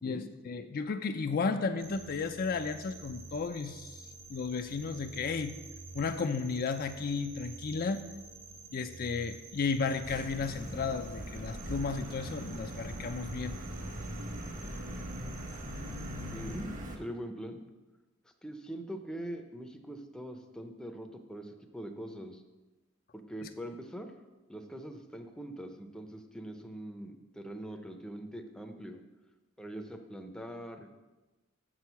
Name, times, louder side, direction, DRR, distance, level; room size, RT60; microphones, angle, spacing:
voice 1, 0.0-5.6 5.9-8.0 8.7-13.6 23.4-23.5, left 4 dB, 45° left, 8 dB, 0.4 m, -34 dB
sound 1, 1.8-16.6, right 3 dB, 70° right, 2.7 m, -50 dB
sound 2, 10.0-17.0, equal, 40° right, 1.1 m, -41 dB
voice 2, 16.3-16.7 17.0-17.6 18.4-22.4 23.1-24.1 24.5-29.0 29.6-30.9, right 1 dB, 5° left, 4 dB, 0.6 m, -42 dB
7.3 x 6.2 x 5.8 m, 1.1 s
head